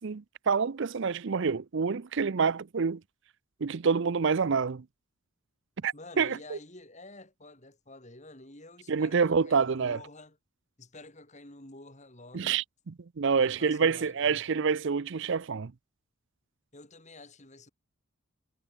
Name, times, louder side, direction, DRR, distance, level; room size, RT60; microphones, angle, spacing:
voice 1, 0.0-3.0 3.6-4.8 5.8-6.6 8.9-10.0 12.3-12.6 13.2-15.7, right 5 dB, 55° right, 0.5 m, -27 dB
voice 2, 5.9-10.4 10.8-12.6 13.3-14.4 16.7-17.7, left 2 dB, 30° left, 4.0 m, -49 dB
head